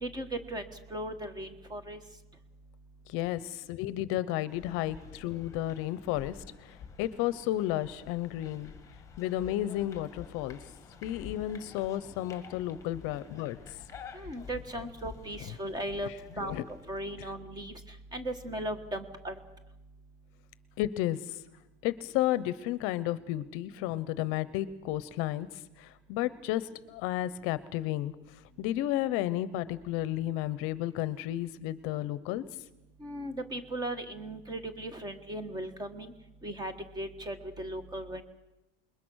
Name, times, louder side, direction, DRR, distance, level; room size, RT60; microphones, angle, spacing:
voice 1, 0.0-0.6 0.9-2.0 14.1-16.1 16.4-17.7 18.1-19.3 33.0-36.1 36.4-38.2, right 1 dB, 15° right, 10 dB, 1.4 m, -37 dB
voice 2, 3.1-8.7 9.2-10.6 11.0-13.6 15.4-15.5 16.0-16.6 20.8-21.4 21.8-32.4, left 14 dB, 50° left, 16 dB, 0.9 m, -32 dB
sound 1, 4.5-17.0, left 6 dB, 10° left, 1.9 m, -50 dB
27.5 x 21.5 x 6.4 m, 0.95 s
cardioid pair, 180°, 29 cm